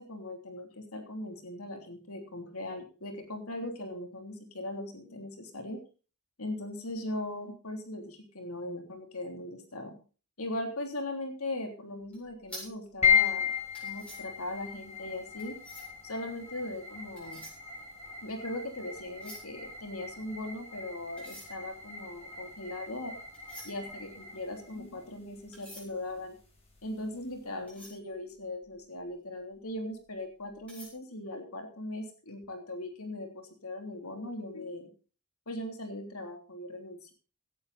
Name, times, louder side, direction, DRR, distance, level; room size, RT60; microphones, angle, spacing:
voice 1, 0.0-5.8 6.4-10.0 10.4-13.5 13.8-15.6 16.0-17.4 18.2-23.2 23.6-26.4 26.8-34.9 35.5-37.1, left 1 dB, 85° left, 5 dB, 3.4 m, -39 dB
sound 1, 12.0-16.1 16.9-18.6 18.9-20.6 21.1-29.1 29.5-29.7 30.1-30.9, equal, 5° left, 7.4 m, -51 dB
sound 2, 13.0-27.5, left 7 dB, 30° left, 7.4 m, -35 dB
17.0 x 11.0 x 4.3 m, 0.36 s
head